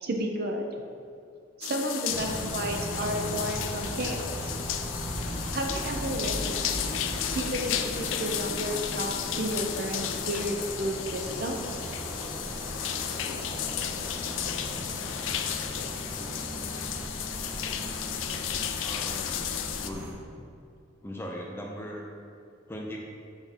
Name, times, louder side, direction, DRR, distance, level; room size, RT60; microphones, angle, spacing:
voice 1, 0.0-0.7 1.6-4.6 5.5-6.5 7.3-11.6, right 1 dB, 50° right, 2 dB, 0.6 m, -32 dB
sound 1, 1.6-19.9, left 9 dB, 75° left, 0.4 m, -34 dB
sound 2, 2.1-20.1, equal, 10° right, 0.9 m, -38 dB
sound 3, 5.1-19.1, equal, 35° left, 1.5 m, -42 dB
voice 2, 18.8-19.5 19.8-20.1 21.0-22.1 22.7-23.0, equal, 10° left, -1 dB, 0.6 m, -38 dB
5.9 x 5.5 x 3.6 m, 2.3 s
head